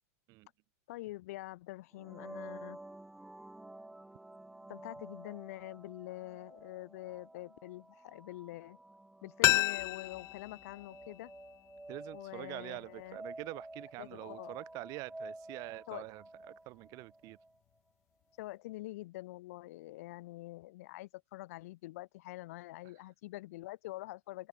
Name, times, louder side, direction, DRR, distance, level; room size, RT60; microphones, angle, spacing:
voice 1, 0.9-2.8 4.7-8.8 9.2-11.3 12.1-13.2 14.0-14.5 15.9-16.0 18.4-24.5, left 18 dB, 60° left, 1.0 m, -45 dB
sound 1, 1.9-17.6, right 2 dB, 5° right, 2.2 m, -51 dB
sound 2, 9.4-12.2 12.5-12.6, left 17 dB, 35° left, 0.6 m, -32 dB
voice 2, 11.9-17.4, right 23 dB, 40° right, 4.1 m, -45 dB
hypercardioid pair, 135°, 9 cm